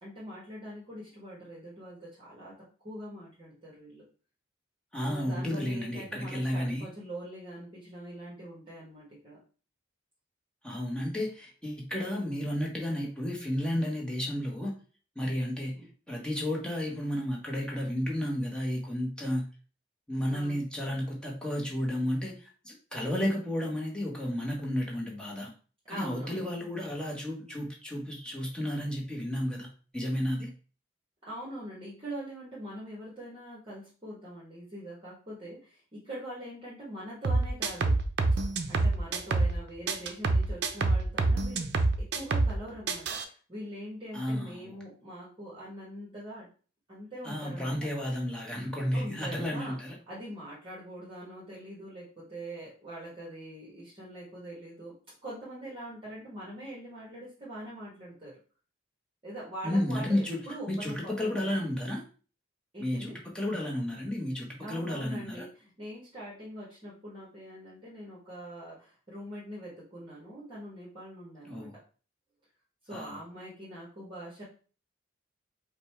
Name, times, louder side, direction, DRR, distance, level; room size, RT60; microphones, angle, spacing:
voice 1, 0.0-2.6 2.8-4.0 5.1-9.4 15.7-15.9 20.3-20.6 25.9-26.5 31.2-38.0 38.7-41.7 42.0-43.2 43.5-46.5 46.9-47.8 48.9-49.8 50.1-54.9 55.2-58.4 59.2-61.6 62.7-63.1 64.6-71.8 72.8-74.4, right 1 dB, 25° right, -6 dB, 1.3 m, -43 dB
voice 2, 4.9-6.9 10.6-14.7 15.1-15.7 16.1-19.5 20.1-25.5 25.9-29.7 29.9-30.5 44.1-44.7 47.2-50.0 59.6-60.4 60.7-62.0 62.8-65.5 71.5-71.7 72.9-73.2, left 1 dB, 5° left, -2 dB, 1.0 m, -32 dB
sound 1, 37.2-39.6 39.9-42.6 42.9-43.2, right 3 dB, 55° right, 0.5 m, -26 dB
5.2 x 2.2 x 4.3 m, 0.39 s
head